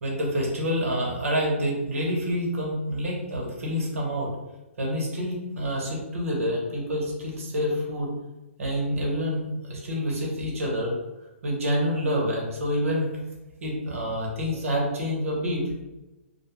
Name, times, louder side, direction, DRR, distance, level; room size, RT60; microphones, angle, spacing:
voice 1, 0.0-4.3 4.8-8.1 8.6-10.9 11.4-13.1 13.6-15.6, equal, 80° right, -2 dB, 0.9 m, -27 dB
2.3 x 2.2 x 3.0 m, 1.0 s
hypercardioid pair, 145°, 8 cm